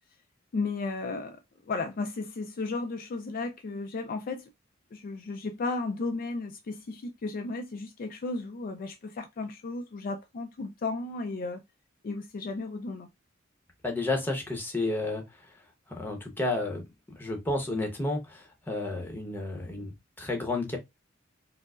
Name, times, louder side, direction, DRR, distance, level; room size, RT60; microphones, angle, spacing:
voice 1, 0.5-1.4 1.7-4.4 4.9-11.6 12.0-13.1, left 3 dB, 45° left, 0.3 m, -34 dB
voice 2, 13.8-15.2 15.9-20.8, left 2 dB, 10° left, 0.8 m, -31 dB
4.4 x 2.0 x 2.4 m
head